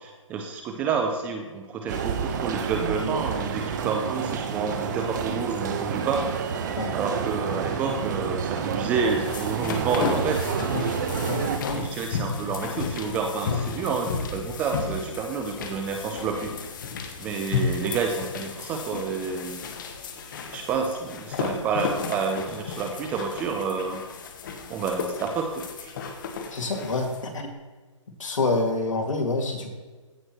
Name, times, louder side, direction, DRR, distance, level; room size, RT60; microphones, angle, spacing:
voice 1, 0.0-6.3 6.9-10.5 11.7-16.5 17.2-19.6 20.5-24.0 24.7-25.9, right 5 dB, 10° right, 4 dB, 0.4 m, -29 dB
sound 1, 1.9-11.6, right 6 dB, 35° right, 0.9 m, -29 dB
Ascending Staircase Interior Carpet, 8.8-27.3, left 5 dB, 40° left, 1.1 m, -33 dB
voice 2, 11.3-11.9 26.5-27.5 28.2-29.7, left 3 dB, 70° left, 3 dB, 2.2 m, -27 dB
15.5 x 6.1 x 3.0 m, 1.3 s
hypercardioid pair, 155°, 17 cm